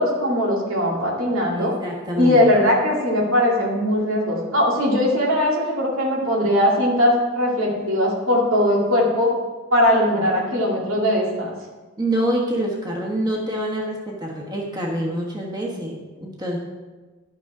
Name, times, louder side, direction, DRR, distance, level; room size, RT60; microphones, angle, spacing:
voice 1, 0.0-1.7 2.2-9.3 9.7-11.5, left 1 dB, 85° right, -2 dB, 2.3 m, -20 dB
voice 2, 1.5-2.4 12.0-16.6, right 1 dB, 20° right, -2 dB, 1.3 m, -26 dB
11.5 x 6.1 x 4.9 m, 1.3 s
head